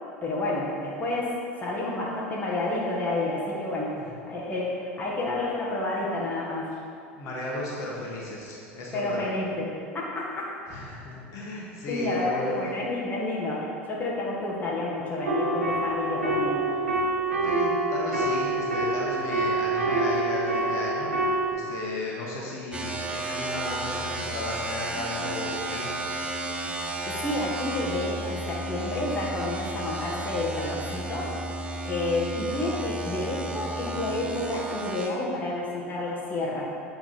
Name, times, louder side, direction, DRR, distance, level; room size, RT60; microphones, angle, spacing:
voice 1, 0.2-4.0 4.3-6.7 8.9-9.7 9.9-10.5 11.9-16.6 27.1-31.3 31.8-36.7, left 2 dB, 25° left, -5 dB, 1.3 m, -30 dB
voice 2, 7.1-9.3 10.7-12.6 17.4-25.9, left 2 dB, 45° left, -4 dB, 1.3 m, -35 dB
sound 1, 15.3-21.5, right 2 dB, 85° right, 0.7 m, -26 dB
sound 2, 22.7-35.1, right 2 dB, 15° right, 0.6 m, -33 dB
8.5 x 3.4 x 4.3 m, 2.5 s
figure-of-eight pair, 75°, 7 cm